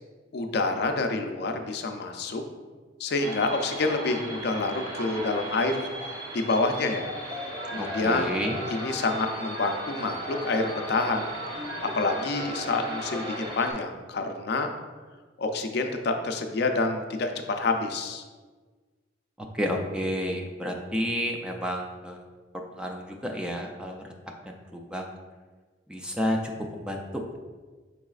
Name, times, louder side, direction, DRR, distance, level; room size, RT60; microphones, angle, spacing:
voice 1, 0.3-2.4 3.0-7.1 7.7-8.4 8.7-11.3 11.8-14.7 15.4-18.2, left 3 dB, 60° left, 5 dB, 0.4 m, -28 dB
sound 1, 3.2-13.7, right 1 dB, 20° right, 0.7 m, -37 dB
Telephone, 7.6-13.3, equal, 60° right, 0.9 m, -39 dB
voice 2, 7.8-8.6 19.4-22.2 22.7-24.1 24.5-25.0 25.9-27.2, equal, 5° right, 1 dB, 0.3 m, -31 dB
5.5 x 4.0 x 2.3 m, 1.4 s
head